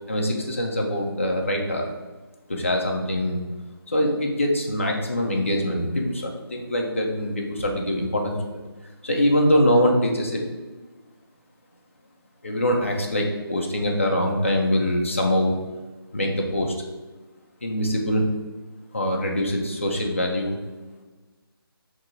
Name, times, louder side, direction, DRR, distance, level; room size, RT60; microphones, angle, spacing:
voice 1, 0.1-1.9 2.5-3.4 3.9-8.6 9.0-10.4 12.4-15.6 16.1-16.7 17.6-18.3 18.9-20.6, equal, 30° left, 0 dB, 0.4 m, -23 dB
2.7 x 2.7 x 3.7 m, 1.3 s
figure-of-eight pair, 175°, 13 cm